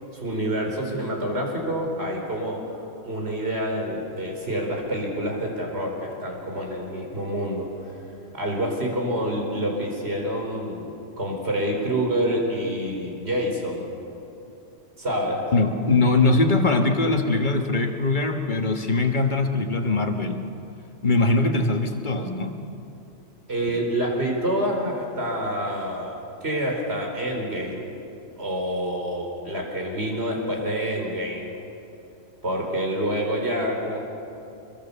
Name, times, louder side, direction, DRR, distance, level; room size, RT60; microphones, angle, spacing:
voice 1, 0.1-13.9 15.0-15.5 23.5-27.9 28.4-31.6 32.4-34.0, equal, 55° right, 1 dB, 4.5 m, -27 dB
voice 2, 15.5-20.5 21.0-22.6, left 3 dB, 40° left, 4 dB, 1.8 m, -22 dB
26.0 x 22.0 x 7.0 m, 2.8 s
omnidirectional pair, 1.3 m